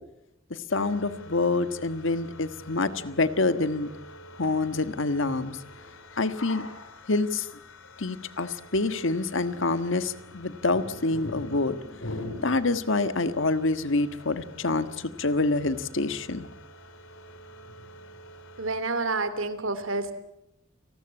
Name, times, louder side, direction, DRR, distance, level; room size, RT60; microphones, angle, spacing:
sound 1, 0.7-18.8, left 1 dB, 90° left, 3.6 m, -45 dB
voice 1, 0.7-3.9 4.4-5.6 6.2-6.7 7.1-7.4 8.0-11.8 12.4-16.5, left 3 dB, 65° left, 12 dB, 1.5 m, -26 dB
voice 2, 18.6-20.1, right 3 dB, 75° right, 12 dB, 2.8 m, -29 dB
29.0 x 19.5 x 8.9 m, 0.86 s
head